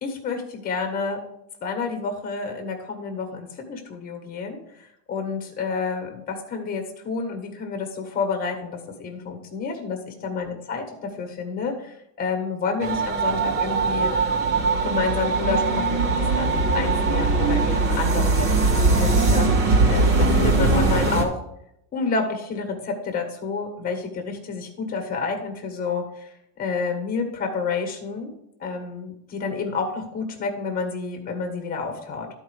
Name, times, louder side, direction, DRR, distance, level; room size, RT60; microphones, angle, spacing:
voice 1, 0.0-1.2 1.6-14.1 14.8-19.5 19.9-21.4 21.9-28.3 28.6-32.3, left 4 dB, 20° left, 4 dB, 1.4 m, -29 dB
sound 1, 12.8-21.2, right 3 dB, 70° right, 2.5 m, -21 dB
12.5 x 4.5 x 4.8 m, 0.77 s
cardioid pair, 175°, 46 cm